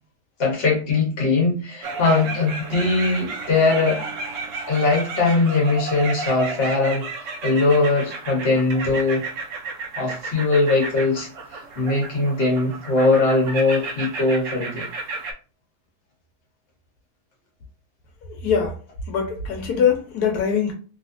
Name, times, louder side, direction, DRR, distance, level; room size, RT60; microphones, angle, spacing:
voice 1, 0.4-4.0 4.7-7.1 7.4-9.3 10.0-14.9, left 3 dB, 40° left, 1.3 m, -21 dB
sound 1, 1.8-15.3, right 3 dB, 65° right, 0.9 m, -33 dB
voice 2, 18.4-18.8 19.1-20.7, left 7 dB, 85° left, 1.3 m, -22 dB
3.2 x 2.7 x 2.5 m
omnidirectional pair, 1.6 m